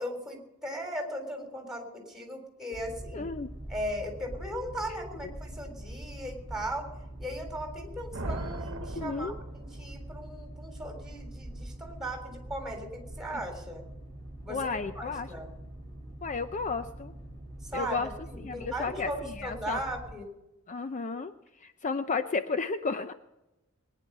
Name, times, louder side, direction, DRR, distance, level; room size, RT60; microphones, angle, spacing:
voice 1, 0.0-3.3 3.7-6.9 7.2-13.8 14.4-14.6 15.0-15.5 17.7-20.3, equal, ahead, 3 dB, 3.6 m, -38 dB
Boat Water vehicle, 2.7-20.1, right 1 dB, 15° left, 3.0 m, -44 dB
voice 2, 3.1-3.5 8.9-9.4 14.5-15.3 16.2-17.1 17.7-18.1 18.4-19.8 20.7-21.3 21.6-23.1, left 4 dB, 35° left, 9 dB, 0.6 m, -33 dB
sound 1, 8.1-10.1, right 2 dB, 65° right, 1.1 m, -38 dB
21.0 x 10.0 x 5.4 m, 0.96 s
head